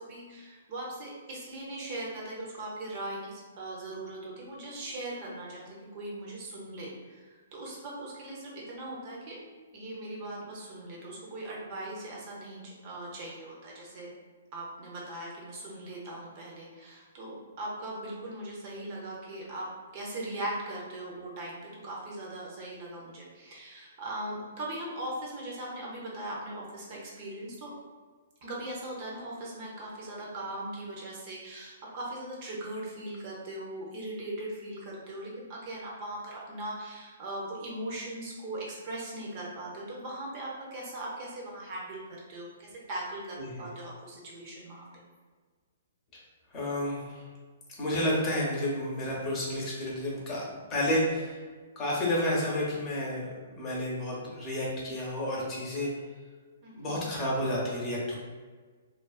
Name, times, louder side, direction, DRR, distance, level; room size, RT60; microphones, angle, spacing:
voice 1, 0.0-9.4 9.7-14.1 14.5-19.7 19.9-27.7 28.4-45.0 56.6-57.1, right 1 dB, 40° right, -4 dB, 0.7 m, -39 dB
voice 2, 43.4-43.7 46.5-47.2 47.8-51.4 51.8-55.9 56.7-58.2, left 1 dB, 30° left, -4 dB, 0.7 m, -31 dB
2.4 x 2.2 x 2.3 m, 1.5 s
hypercardioid pair, 125°, 0 cm